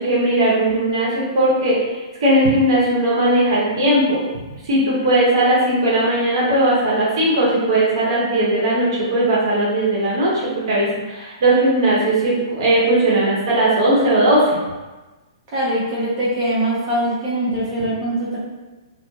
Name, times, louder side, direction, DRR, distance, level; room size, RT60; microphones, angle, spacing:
voice 1, 0.0-1.8 2.2-4.2 4.7-10.3 10.7-14.4, right 1 dB, 60° right, -7 dB, 0.9 m, -18 dB
voice 2, 15.5-18.4, right 1 dB, 35° right, -7 dB, 0.9 m, -22 dB
2.4 x 2.3 x 2.7 m, 1.2 s
hypercardioid pair, 120°, 3 cm